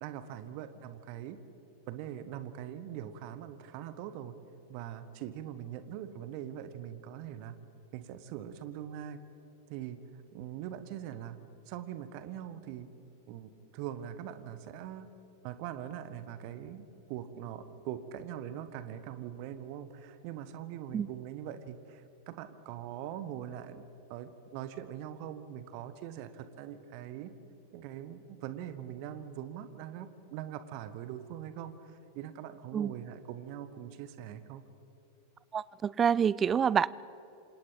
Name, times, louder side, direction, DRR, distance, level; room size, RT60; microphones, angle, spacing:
voice 1, 0.0-1.4 1.9-4.4 4.7-7.6 7.9-9.2 9.7-10.0 10.3-11.4 11.7-12.9 13.3-15.1 15.4-23.8 24.1-27.3 27.7-34.6, right 10 dB, 45° right, 12 dB, 1.3 m, -42 dB
voice 2, 35.5-36.9, right 7 dB, 20° right, 21 dB, 0.4 m, -27 dB
27.0 x 27.0 x 4.0 m, 3.0 s
figure-of-eight pair, 90°, 0 cm